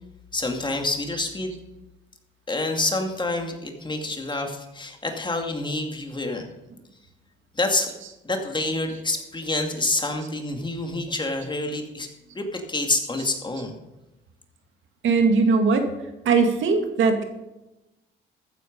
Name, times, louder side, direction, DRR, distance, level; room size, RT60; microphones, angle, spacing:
voice 1, 0.3-1.5 2.5-6.5 7.5-7.9 8.2-12.1 12.3-13.7, left 2 dB, 25° left, 4 dB, 2.3 m, -27 dB
voice 2, 15.0-15.9 16.3-17.3, right 4 dB, 75° right, 5 dB, 2.2 m, -19 dB
14.5 x 9.4 x 5.3 m, 0.99 s
cardioid pair, 90°, 20 cm